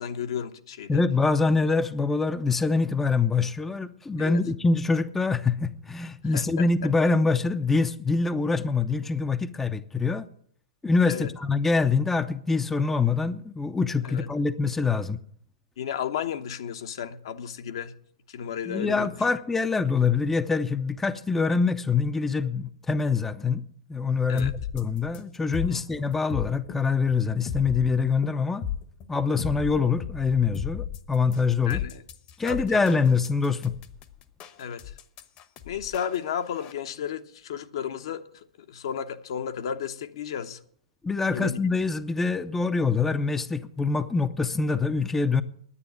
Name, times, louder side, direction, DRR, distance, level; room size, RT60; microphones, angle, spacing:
voice 1, 0.0-1.0 4.2-4.4 6.2-6.7 11.1-11.3 14.0-14.3 15.8-17.9 18.3-19.1 24.3-24.5 25.7-25.8 31.7-32.0 32.4-32.9 34.6-34.9 35.6-40.6 41.3-41.6, left 8 dB, 60° left, 1.0 m, -33 dB
voice 2, 0.9-10.3 10.8-15.2 18.7-23.6 23.9-28.6 29.1-31.8 32.4-33.8 41.0-45.4, left 4 dB, 10° left, 0.6 m, -25 dB
sound 1, 24.4-36.7, left 9 dB, 35° left, 1.0 m, -36 dB
9.8 x 9.7 x 9.1 m
hypercardioid pair, 110°, 3 cm